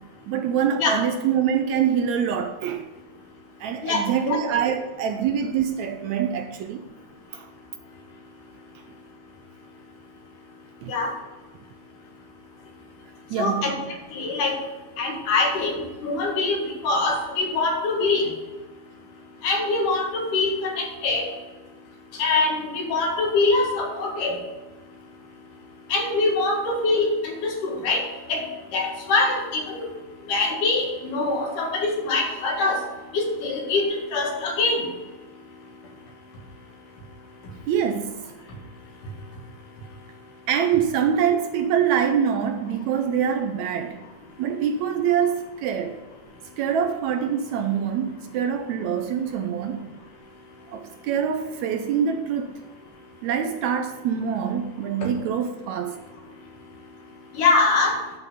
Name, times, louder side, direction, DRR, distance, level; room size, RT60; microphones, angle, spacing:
voice 1, 0.3-2.8 3.6-6.8 7.3-7.5 10.8-10.9 13.3-13.7 37.7-38.1 40.5-44.0 44.4-46.0 46.6-49.9 50.7-52.5 53.2-56.0, right 8 dB, 80° right, 1.8 m, -25 dB
voice 2, 3.8-4.4 10.9-11.1 13.4-13.7 14.1-14.5 15.0-18.3 19.4-21.2 22.1-24.3 25.9-28.5 28.7-29.9 30.3-32.8 33.1-34.8 57.3-58.0, left 3 dB, 80° left, 3.3 m, -23 dB
10.5 x 5.3 x 5.5 m
omnidirectional pair, 3.6 m